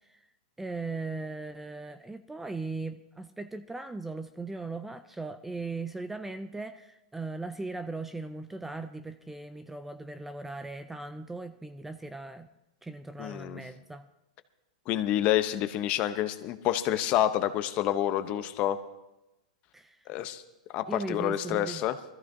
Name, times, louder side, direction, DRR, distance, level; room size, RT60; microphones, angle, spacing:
voice 1, 0.6-12.5 12.8-14.1 19.7-20.0 20.9-21.8, right 3 dB, 5° right, 11 dB, 0.3 m, -38 dB
voice 2, 13.2-13.6 14.9-18.8 20.1-20.4 20.7-22.0, left 12 dB, 35° left, 11 dB, 0.7 m, -28 dB
20.5 x 14.0 x 2.7 m, 0.97 s
hypercardioid pair, 140°, 4 cm